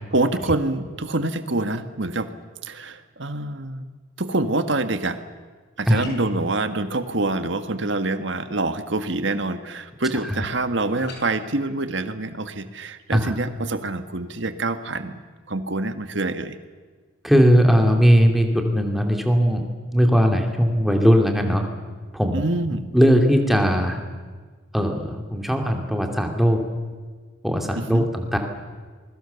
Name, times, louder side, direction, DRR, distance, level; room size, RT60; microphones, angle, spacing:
voice 1, 0.1-2.3 2.6-3.8 4.2-5.2 5.8-15.1 15.5-16.6 22.3-22.9 27.7-28.1, right 2 dB, 60° right, 9 dB, 1.6 m, -26 dB
sound 1, 6.0-6.4 11.0-11.2, left 1 dB, 55° left, 6.1 m, -37 dB
voice 2, 17.2-19.6 19.9-21.6 22.1-22.4 22.9-24.0 24.7-26.6 27.4-28.4, equal, ahead, 3 dB, 2.7 m, -18 dB
27.5 x 21.5 x 7.0 m, 1.5 s
head